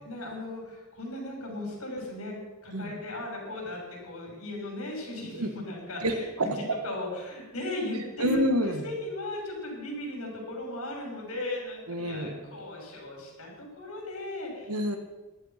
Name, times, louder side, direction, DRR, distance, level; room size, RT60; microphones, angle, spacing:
voice 1, 0.0-2.4 2.6-8.4 8.8-14.7, left 1 dB, 70° left, 0 dB, 6.5 m, -37 dB
voice 2, 6.0-6.5 8.2-8.9 11.9-12.6 14.7-15.0, equal, 90° right, 7 dB, 1.9 m, -28 dB
14.5 x 12.5 x 6.0 m, 1.2 s
head